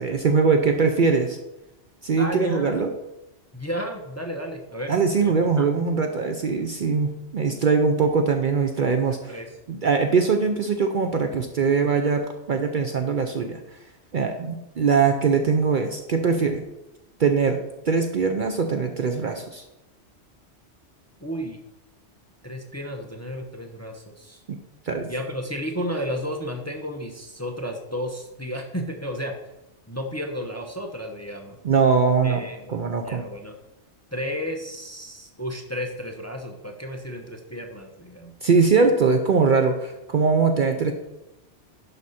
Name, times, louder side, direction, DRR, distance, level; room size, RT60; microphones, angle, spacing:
voice 1, 0.0-1.4 2.0-2.9 4.9-9.4 9.7-13.6 14.1-16.6 17.2-17.6 17.9-19.6 24.9-25.1 31.6-32.4 32.7-33.2 38.4-40.9, right 5 dB, 50° right, 5 dB, 0.7 m, -21 dB
voice 2, 2.2-2.8 3.5-4.9 5.2-5.7 9.3-9.5 21.2-21.6 22.4-24.4 25.1-29.4 29.9-31.6 32.2-32.8 33.0-33.6 34.1-38.3, equal, 15° left, 2 dB, 0.7 m, -32 dB
11.0 x 5.0 x 4.2 m, 0.96 s
omnidirectional pair, 1.2 m